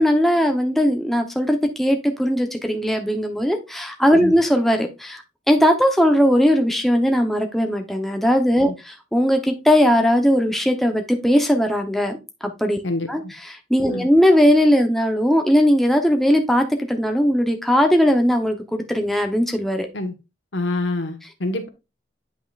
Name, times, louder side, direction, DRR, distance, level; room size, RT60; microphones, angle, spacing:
voice 1, 0.0-12.8 13.1-19.9, equal, ahead, 3 dB, 0.8 m, -19 dB
voice 2, 12.8-13.3 13.9-14.1 19.9-20.1 20.5-21.7, left 2 dB, 70° left, 7 dB, 1.3 m, -26 dB
8.8 x 5.6 x 2.4 m, 0.25 s
head